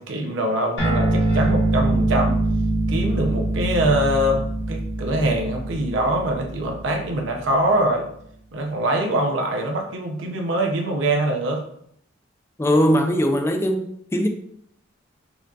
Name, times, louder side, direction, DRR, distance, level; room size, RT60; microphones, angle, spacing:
voice 1, 0.0-2.4 2.9-8.1 8.5-11.6, right 1 dB, 65° right, 0.6 m, -23 dB
sound 1, 0.8-7.6, right 2 dB, 60° left, 1.4 m, -24 dB
voice 2, 12.6-14.3, equal, 15° left, 0.3 m, -20 dB
4.3 x 2.6 x 2.3 m
head